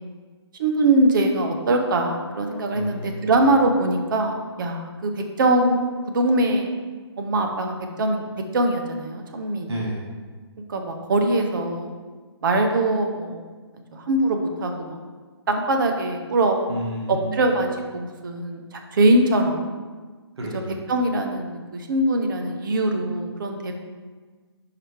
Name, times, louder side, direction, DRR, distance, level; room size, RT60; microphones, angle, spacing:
voice 1, 0.6-6.7 7.2-8.2 8.5-9.7 10.7-11.9 12.4-13.4 13.9-15.0 15.5-16.6 17.1-17.7 17.9-19.7 20.9-23.7, right 2 dB, 45° right, 4 dB, 0.8 m, -22 dB
voice 2, 2.7-3.3 9.7-10.0 16.7-17.3 20.4-20.7, equal, 65° right, -3 dB, 1.5 m, -31 dB
4.9 x 4.6 x 4.6 m, 1.4 s
figure-of-eight pair, 140°, 14 cm